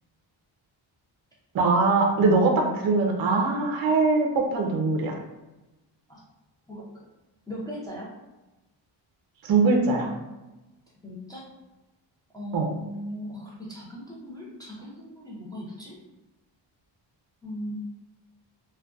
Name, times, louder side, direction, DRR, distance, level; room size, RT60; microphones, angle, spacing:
voice 1, 1.5-5.2 9.4-10.1 12.5-12.7, right 3 dB, 50° right, 2 dB, 0.5 m, -22 dB
voice 2, 6.7-7.0 7.5-8.1 11.0-11.5 12.3-16.0 17.4-17.8, equal, 10° left, -6 dB, 0.5 m, -38 dB
2.4 x 2.2 x 2.3 m, 1.1 s
cardioid pair, 100°, 47 cm